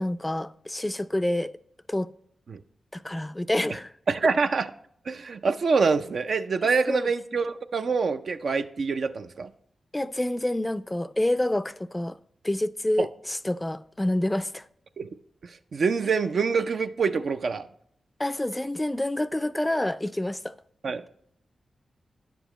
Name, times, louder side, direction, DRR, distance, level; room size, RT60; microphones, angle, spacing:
voice 1, 0.0-1.5 1.9-2.1 2.9-3.9 6.9-7.1 9.9-12.2 12.4-14.7 18.2-20.5, left 1 dB, 15° left, 0.4 m, -28 dB
voice 2, 4.1-4.7 5.1-9.5 13.0-13.1 15.0-15.1 15.4-17.7 20.8-21.0, right 4 dB, 70° right, 0.4 m, -25 dB
9.8 x 6.9 x 3.0 m
cardioid pair, 45°, 0 cm